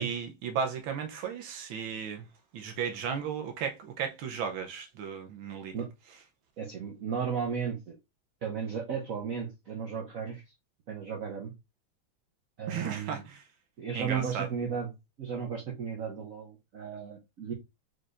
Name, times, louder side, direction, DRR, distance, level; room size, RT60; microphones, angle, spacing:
voice 1, 0.0-2.2 2.5-5.8 12.7-13.4 13.9-14.5, right 7 dB, 75° right, 1.6 m, -35 dB
voice 2, 6.6-8.0 8.4-10.4 10.9-11.5 12.6-13.2 13.8-14.9 15.2-17.5, right 6 dB, 55° right, 1.0 m, -34 dB
4.8 x 4.3 x 2.5 m
omnidirectional pair, 2.2 m